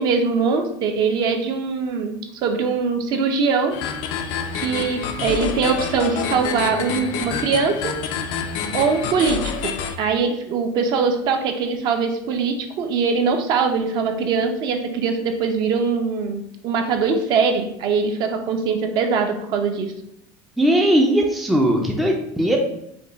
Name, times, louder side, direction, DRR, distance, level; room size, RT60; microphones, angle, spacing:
voice 1, 0.0-3.7 4.6-7.9 8.7-19.9, right 5 dB, 45° right, 5 dB, 0.6 m, -22 dB
sound 1, 3.7-10.0, left 6 dB, 60° left, 0.5 m, -27 dB
voice 2, 20.6-22.6, right 1 dB, ahead, 0 dB, 0.4 m, -18 dB
5.2 x 2.3 x 3.9 m, 0.75 s
cardioid pair, 160°, 10 cm